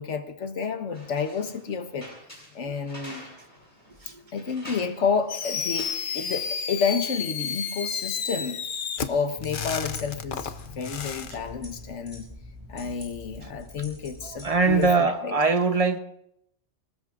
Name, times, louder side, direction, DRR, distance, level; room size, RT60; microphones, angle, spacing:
voice 1, 0.0-2.1 2.5-3.2 4.3-8.6 9.1-12.3 12.7-15.4, left 5 dB, 90° left, 8 dB, 1.5 m, -30 dB
sound 1, 0.9-6.5, left 1 dB, 25° left, 7.7 m, -47 dB
Fireworks, 5.3-11.3, left 6 dB, 50° left, 0.9 m, -32 dB
sound 2, 9.4-14.9, left 4 dB, 10° left, 7.9 m, -42 dB
voice 2, 14.2-16.0, right 4 dB, 35° right, 8 dB, 1.0 m, -22 dB
25.5 x 19.0 x 2.5 m, 0.75 s
omnidirectional pair, 1.2 m